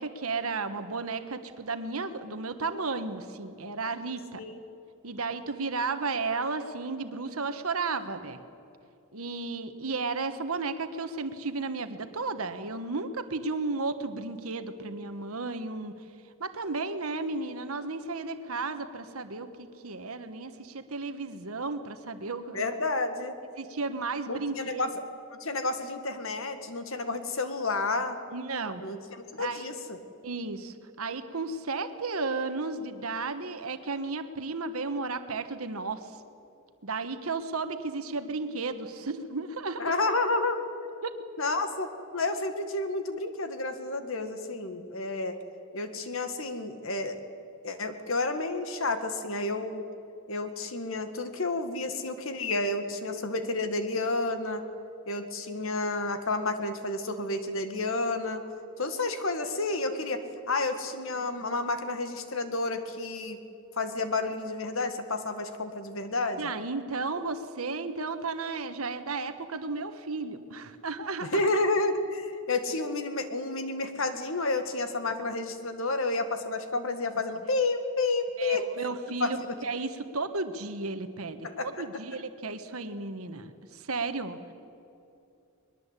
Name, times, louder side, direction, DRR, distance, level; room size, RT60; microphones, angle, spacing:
voice 1, 0.0-4.4 5.0-8.4 9.1-15.9 16.4-22.7 23.6-24.9 28.3-28.8 29.4-29.7 30.2-36.1 36.8-40.0 41.0-41.1 61.2-61.3 66.4-71.4 78.4-84.4, right 3 dB, 80° right, 9 dB, 1.4 m, -34 dB
voice 2, 22.5-23.4 24.3-24.9 25.3-28.2 28.8-30.0 39.8-40.6 41.4-45.4 45.7-47.2 47.6-49.9 50.3-54.6 55.1-58.4 58.8-63.4 63.8-66.5 71.2-78.6 79.2-79.6 81.4-81.8, left 2 dB, 65° left, 8 dB, 1.9 m, -30 dB
21.5 x 21.0 x 8.3 m, 2.7 s
head